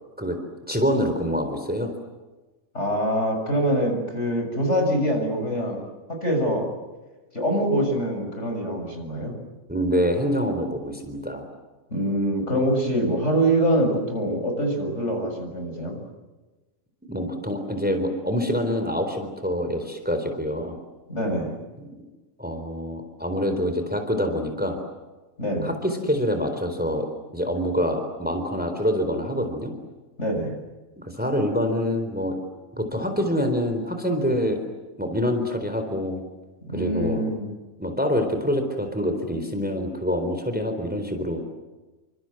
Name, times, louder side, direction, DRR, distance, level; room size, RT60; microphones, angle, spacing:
voice 1, 0.7-1.9 9.7-11.4 17.1-20.8 21.8-21.9 22.4-24.8 25.6-29.7 31.0-32.4 32.7-34.6 35.0-36.2 36.7-37.3 37.8-41.4, equal, 5° right, 6 dB, 4.0 m, -26 dB
voice 2, 2.7-5.8 6.1-6.7 7.3-9.3 11.9-16.0 21.1-21.5 25.4-25.7 30.2-30.5 36.7-37.5, equal, 55° left, 4 dB, 7.2 m, -24 dB
29.5 x 25.5 x 7.9 m, 1.2 s
omnidirectional pair, 1.4 m